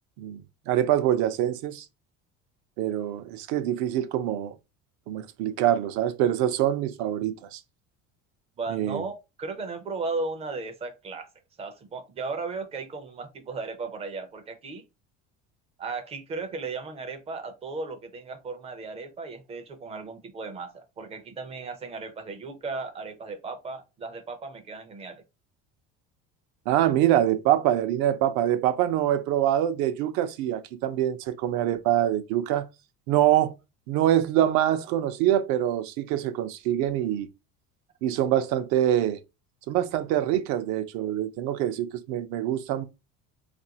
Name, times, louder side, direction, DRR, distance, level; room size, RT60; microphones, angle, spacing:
voice 1, 0.2-1.9 2.8-4.6 5.1-7.6 8.7-9.0 26.7-32.7 33.1-33.5 33.9-37.3 38.0-39.2 39.7-42.8, right 12 dB, 60° right, 0.6 m, -25 dB
voice 2, 8.6-11.3 11.6-14.8 15.8-25.2, right 3 dB, 20° right, 0.4 m, -36 dB
4.1 x 2.5 x 2.8 m
cardioid pair, 175°, 32 cm